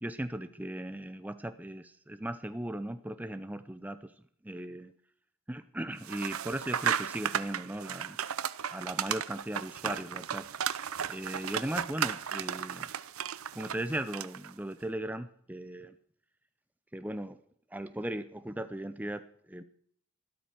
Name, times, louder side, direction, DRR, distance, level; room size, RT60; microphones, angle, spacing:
voice 1, 0.0-4.1 4.4-4.9 5.5-8.2 8.7-10.5 11.1-12.9 13.5-16.0 16.9-17.4 17.7-19.6, right 1 dB, 10° right, 11 dB, 0.6 m, -37 dB
sound 1, 6.0-14.5, right 8 dB, 80° right, 0.7 m, -35 dB
13.5 x 12.5 x 6.2 m, 0.62 s
head